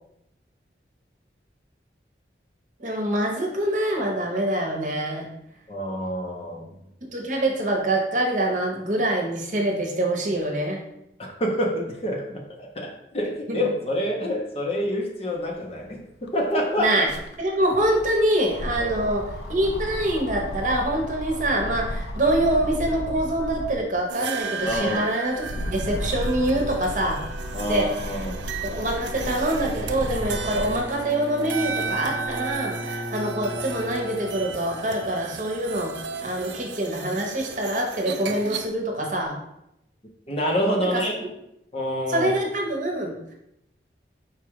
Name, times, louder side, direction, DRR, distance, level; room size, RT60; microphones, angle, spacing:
voice 1, 2.8-5.3 7.0-10.8 13.5-13.7 16.8-17.1 17.4-27.2 27.7-28.2 28.6-35.9 36.2-39.4 40.9-41.0 42.1-43.2, right 1 dB, 45° right, 1 dB, 0.9 m, -25 dB
voice 2, 5.7-6.7 11.2-16.9 18.8-19.1 24.7-25.0 27.5-28.4 40.3-41.1 41.7-42.3, equal, 35° left, -1 dB, 0.8 m, -27 dB
sound 1, 15.8-15.9 16.1-23.9 24.4-30.9 31.4-32.6, left 1 dB, 70° left, 0.5 m, -34 dB
sound 2, 24.1-38.7, right 5 dB, 85° right, 0.4 m, -35 dB
Bowed string instrument, 29.6-34.8, equal, 20° right, 0.3 m, -37 dB
4.8 x 2.4 x 4.6 m, 0.81 s
head